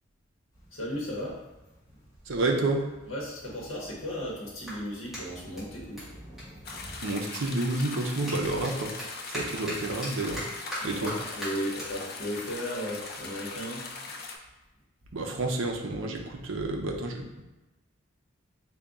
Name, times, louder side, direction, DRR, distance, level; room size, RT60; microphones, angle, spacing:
sound 1, 0.5-7.0, equal, 15° left, 0.9 m, -52 dB
voice 1, 0.7-1.4 3.1-6.1 10.8-14.1, equal, 75° left, -5 dB, 0.9 m, -35 dB
voice 2, 2.3-2.8 7.0-10.5 10.8-11.1 15.1-17.4, right 2 dB, 75° right, 2 dB, 0.5 m, -30 dB
Clapping, 4.6-7.4 7.7-14.3, equal, ahead, 1.2 m, -42 dB
sound 2, 6.6-14.4, left 3 dB, 50° left, 0.4 m, -40 dB
3.5 x 2.2 x 3.9 m, 1.0 s
head